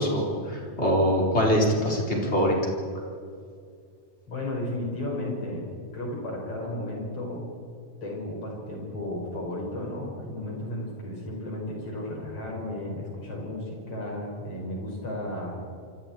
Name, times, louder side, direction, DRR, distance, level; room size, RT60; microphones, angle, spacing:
voice 1, 0.0-2.6, equal, 15° left, -2 dB, 4.3 m, -23 dB
voice 2, 4.3-5.7 5.9-7.5 8.0-15.6, left 1 dB, 40° left, -2 dB, 6.9 m, -34 dB
26.5 x 26.0 x 4.6 m, 2.3 s
omnidirectional pair, 4.1 m